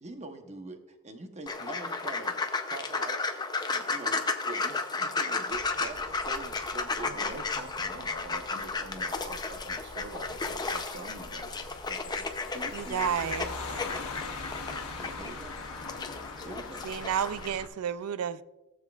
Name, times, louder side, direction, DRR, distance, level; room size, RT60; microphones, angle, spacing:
voice 1, 0.0-3.3 3.7-7.3 12.5-13.4 13.8-14.2 15.0-15.6 16.4-16.9, right 2 dB, 30° right, 0.9 m, -44 dB
sound 1, 1.5-17.5, left 4 dB, 20° left, 0.6 m, -34 dB
sound 2, 5.5-17.7, left 3 dB, 75° left, 1.3 m, -43 dB
voice 2, 7.0-12.3, right 2 dB, 55° right, 1.0 m, -45 dB
voice 3, 12.7-13.5 16.8-18.4, right 8 dB, 75° right, 0.4 m, -31 dB
17.5 x 7.4 x 2.4 m
head